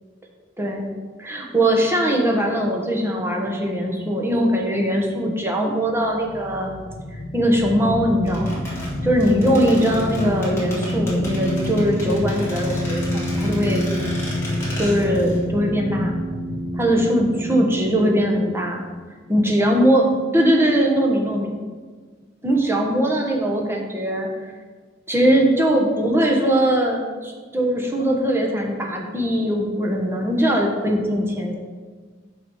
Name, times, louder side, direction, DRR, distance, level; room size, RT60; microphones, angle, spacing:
voice 1, 0.6-0.9 1.2-6.7 7.3-8.7 9.0-13.8 14.8-16.1 16.8-18.9 19.3-21.5 22.4-24.3 25.1-31.5, equal, 15° right, 0 dB, 1.2 m, -20 dB
sound 1, 6.0-19.6, left 1 dB, 90° left, 1.0 m, -28 dB
sound 2, 8.3-15.4 15.7-15.8, left 1 dB, 15° left, 2.3 m, -35 dB
6.4 x 6.1 x 5.5 m, 1.5 s
head